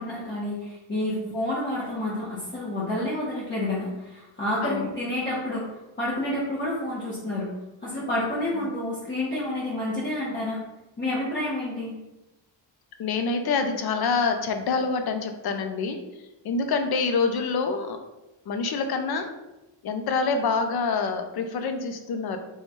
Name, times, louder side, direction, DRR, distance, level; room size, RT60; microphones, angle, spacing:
voice 1, 0.0-7.5 7.8-10.6 11.0-12.0, left 1 dB, 25° left, -9 dB, 0.9 m, -29 dB
voice 2, 13.0-16.0 16.4-18.0 18.5-19.3 19.8-22.4, left 4 dB, 55° left, 6 dB, 0.5 m, -26 dB
3.0 x 2.4 x 4.0 m, 0.99 s
cardioid pair, 120°, 46 cm